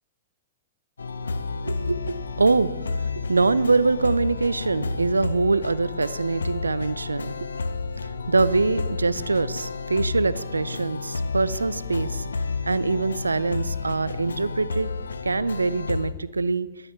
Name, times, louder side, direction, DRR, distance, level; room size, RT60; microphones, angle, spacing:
sound 1, 1.0-16.1, left 4 dB, 80° left, 0.6 m, -31 dB
voice 1, 1.6-7.5 8.0-12.3 12.6-14.9 15.2-16.7, right 3 dB, 85° right, 18 dB, 0.5 m, -24 dB
13.5 x 12.0 x 4.4 m, 1.2 s
figure-of-eight pair, 105°, 0 cm